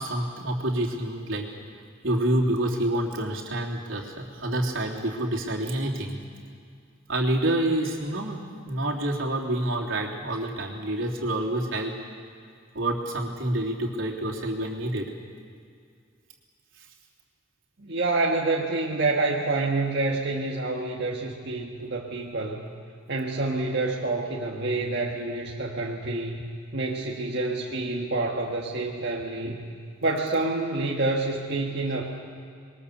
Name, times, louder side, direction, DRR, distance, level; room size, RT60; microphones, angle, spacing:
voice 1, 0.0-1.5 2.0-6.2 7.1-8.4 8.7-11.9 12.7-15.1, right 1 dB, 85° right, -2 dB, 3.2 m, -27 dB
voice 2, 17.8-22.6 23.1-26.5 26.7-29.6 30.0-32.0, right 2 dB, 60° right, -3 dB, 1.8 m, -27 dB
26.5 x 22.0 x 6.9 m, 2.2 s
head